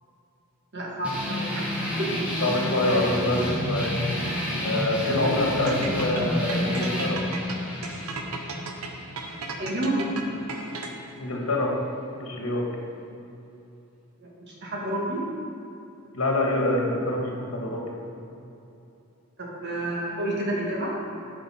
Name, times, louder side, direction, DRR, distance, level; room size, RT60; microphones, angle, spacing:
voice 1, 0.7-1.7 2.0-2.4 2.9-3.0 9.6-10.1 14.2-15.4 19.4-21.0, right 1 dB, 50° right, -3 dB, 1.6 m, -30 dB
sound 1, 1.0-10.1, equal, 5° right, 1.5 m, -30 dB
voice 2, 2.4-3.9 4.6-7.2 11.2-11.7 12.1-12.6 16.1-17.8, left 1 dB, 70° left, -1 dB, 1.4 m, -26 dB
sound 2, 5.7-11.2, right 4 dB, 80° right, 0.8 m, -35 dB
9.3 x 5.5 x 4.3 m, 2.8 s
head